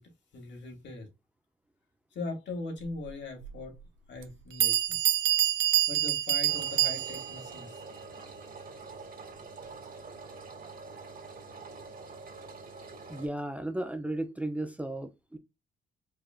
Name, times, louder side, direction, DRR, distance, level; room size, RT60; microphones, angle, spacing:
voice 1, 0.3-1.1 2.1-3.7 4.1-5.0 5.9-7.8, left 3 dB, 65° left, 2.2 m, -40 dB
Bell, 3.4-3.5 4.2-4.3 4.6-7.4, right 12 dB, 80° right, 0.8 m, -26 dB
Engine, 6.5-13.3, right 4 dB, 45° right, 2.0 m, -46 dB
voice 2, 13.1-15.4, right 1 dB, 5° right, 0.7 m, -34 dB
4.8 x 3.1 x 2.4 m
cardioid pair, 90°, 20 cm